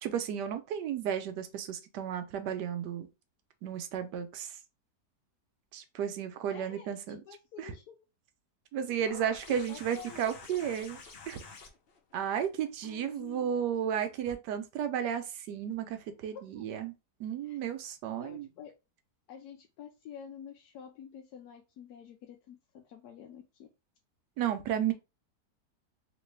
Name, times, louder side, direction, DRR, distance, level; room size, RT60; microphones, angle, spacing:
voice 1, 0.0-3.1 3.6-4.6 5.7-7.2 7.6-7.7 8.7-11.0 11.3-11.4 12.1-16.9 17.2-18.5 24.4-24.9, right 9 dB, 80° right, 1.2 m, -33 dB
voice 2, 6.5-8.0 9.0-10.7 12.8-13.5 16.5-16.6 17.4-17.6 18.2-18.7 19.3-23.7, left 8 dB, 70° left, 1.0 m, -49 dB
sound 1, 9.0-14.3 15.7-15.8, left 4 dB, 50° left, 0.7 m, -51 dB
3.0 x 2.9 x 3.2 m
omnidirectional pair, 1.8 m